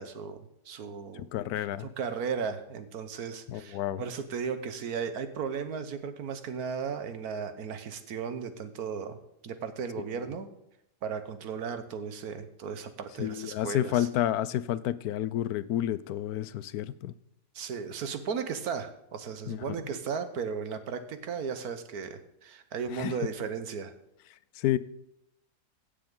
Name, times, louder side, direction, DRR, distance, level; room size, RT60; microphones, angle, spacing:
voice 1, 0.0-1.3 1.8-9.2 9.4-10.5 11.0-14.1 17.5-23.9, right 6 dB, 75° right, 10 dB, 1.5 m, -35 dB
voice 2, 1.2-1.9 3.5-4.0 13.2-17.1 19.5-19.8 23.0-23.1 24.6-24.8, left 12 dB, 80° left, 16 dB, 1.1 m, -30 dB
16.0 x 6.9 x 3.8 m, 0.80 s
omnidirectional pair, 1.6 m